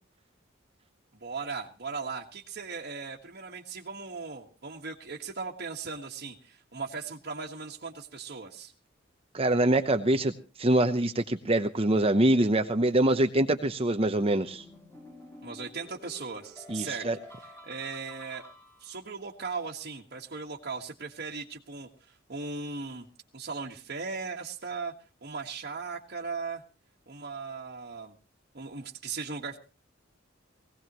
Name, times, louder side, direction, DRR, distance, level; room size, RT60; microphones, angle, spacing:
voice 1, 1.1-8.7 15.4-17.1 17.4-18.4 18.8-23.1 23.3-24.9 25.2-26.6 27.1-28.1 28.5-29.6, right 4 dB, 55° right, -2 dB, 1.6 m, -38 dB
voice 2, 9.3-10.3 10.6-14.6 16.7-17.2, right 1 dB, 30° right, 7 dB, 0.8 m, -24 dB
sound 1, 14.2-19.1, left 1 dB, 15° left, 3.6 m, -50 dB
20.5 x 17.0 x 3.1 m, 0.34 s
head